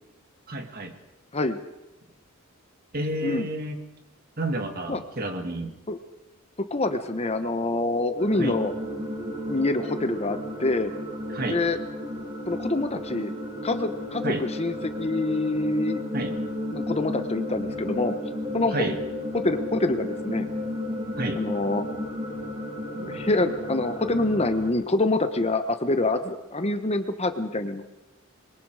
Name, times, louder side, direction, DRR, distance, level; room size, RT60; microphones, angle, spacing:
voice 1, 0.5-0.9 2.9-3.8 4.4-5.7 8.4-8.6 11.3-11.6 14.2-14.5 16.1-16.3 18.7-19.0 21.2-21.4 22.9-23.2, right 1 dB, 45° right, 5 dB, 2.4 m, -30 dB
voice 2, 6.7-8.7 9.5-10.9 11.5-11.8 12.5-13.3 13.6-16.0 16.7-18.2 18.5-18.9 19.3-20.5 21.4-21.8 23.1-27.8, left 2 dB, 30° left, 9 dB, 1.2 m, -26 dB
sound 1, 8.2-24.7, left 1 dB, 30° right, 5.5 m, -33 dB
26.5 x 22.5 x 5.0 m, 0.97 s
head